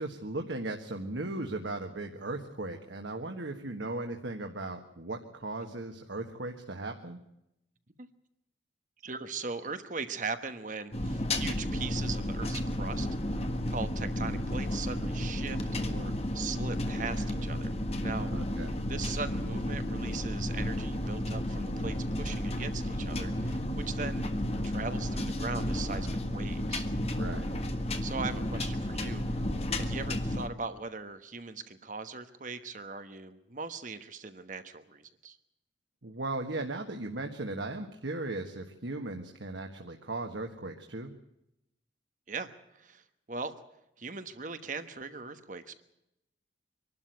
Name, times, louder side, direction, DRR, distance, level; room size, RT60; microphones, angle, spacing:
voice 1, 0.0-7.2 18.3-18.8 27.2-27.5 36.0-41.1, right 2 dB, 80° right, 4 dB, 1.6 m, -37 dB
voice 2, 9.0-13.1 13.7-17.7 18.0-18.3 18.9-24.2 24.6-26.9 28.0-29.4 29.8-35.4 42.3-43.5 44.0-45.7, right 4 dB, 45° right, 10 dB, 1.2 m, -39 dB
sound 1, 10.9-30.5, left 1 dB, 35° left, 1.6 m, -32 dB
24.5 x 12.5 x 9.3 m, 0.84 s
head